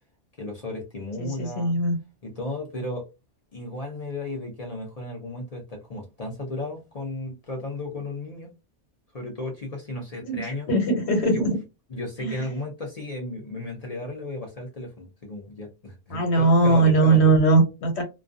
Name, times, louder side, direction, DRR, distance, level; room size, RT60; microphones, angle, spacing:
voice 1, 0.4-1.8 2.2-3.1 3.5-8.5 9.1-10.7 11.3-11.4 11.9-17.2, left 2 dB, 45° left, 0.5 m, -34 dB
voice 2, 1.2-2.0 10.2-11.6 12.2-12.5 16.1-18.0, right 3 dB, 65° left, 1.2 m, -20 dB
2.3 x 2.3 x 2.5 m
omnidirectional pair, 1.2 m